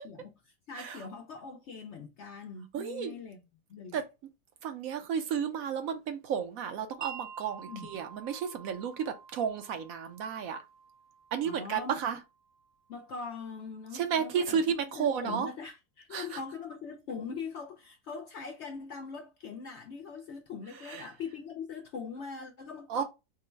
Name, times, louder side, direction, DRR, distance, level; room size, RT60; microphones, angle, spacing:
voice 1, 0.0-3.4 3.7-4.0 7.7-7.9 11.4-11.9 12.9-14.6 14.9-23.0, left 5 dB, 70° left, 0.7 m, -42 dB
voice 2, 2.7-3.2 3.9-4.0 4.6-10.6 11.3-12.2 13.9-15.5 16.1-16.4 20.8-21.1 22.9-23.0, right 7 dB, 70° right, 1.0 m, -32 dB
Wind chime, 7.0-13.1, right 7 dB, 55° right, 0.4 m, -49 dB
3.7 x 2.1 x 4.3 m
omnidirectional pair, 1.6 m